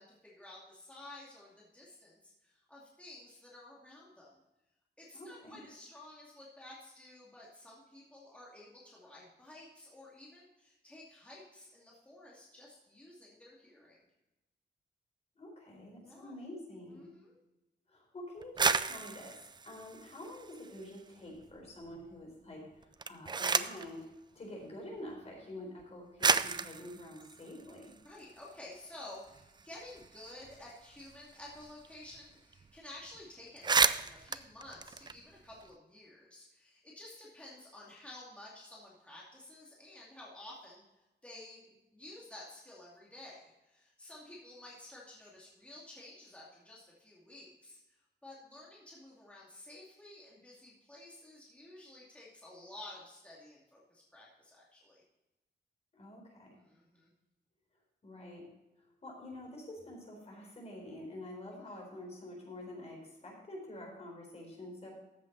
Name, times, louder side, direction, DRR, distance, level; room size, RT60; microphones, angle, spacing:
voice 1, 0.0-4.4 5.0-14.1 16.0-16.4 17.0-17.4 28.0-40.8 41.2-43.4 43.7-47.8 48.2-55.0 56.6-57.1 61.4-61.5, left 1 dB, 5° left, -6 dB, 2.5 m, -52 dB
voice 2, 5.1-5.6 15.3-17.1 17.9-24.1 24.3-27.9 55.9-56.6 58.0-58.5 58.8-64.9, left 1 dB, 35° left, -1 dB, 4.3 m, -47 dB
sound 1, 18.4-21.0 21.4-22.0 22.8-23.9 25.0-25.1 25.8-25.9 26.2-28.5 28.9-29.0 29.2-31.9 32.1-32.2 32.5-32.8 33.1-33.2 33.5-35.7, right 4 dB, 25° right, 0.4 m, -33 dB
14.0 x 7.5 x 4.1 m, 1.0 s
wide cardioid pair, 155°, 19 cm